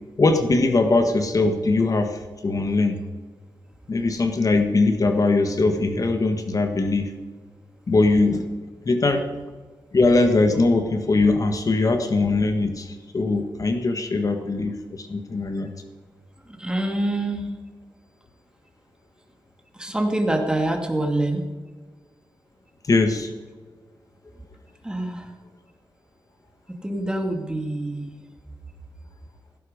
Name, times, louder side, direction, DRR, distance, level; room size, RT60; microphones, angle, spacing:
voice 1, 0.2-3.0 3.9-7.1 7.9-8.5 8.8-9.2 9.9-15.7 22.9-23.3, left 3 dB, 45° left, 6 dB, 1.5 m, -21 dB
voice 2, 16.5-17.5 19.7-21.5 24.8-25.3 26.8-28.2, right 1 dB, 10° right, 3 dB, 2.4 m, -26 dB
17.0 x 15.5 x 5.2 m, 1.4 s
wide cardioid pair, 115°, 8 cm